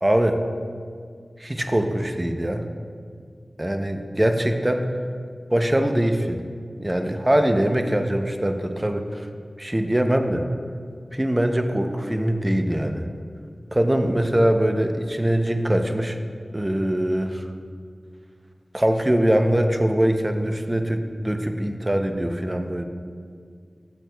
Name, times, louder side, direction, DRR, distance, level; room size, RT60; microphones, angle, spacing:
voice 1, 0.0-0.4 1.4-2.7 3.6-4.9 5.5-6.4 6.8-9.3 9.6-10.5 11.1-13.1 13.7-16.2 16.5-17.4 18.7-22.8, right 1 dB, 20° right, 5 dB, 0.6 m, -22 dB
12.0 x 6.2 x 2.3 m, 2.1 s
wide cardioid pair, 55°, 0 cm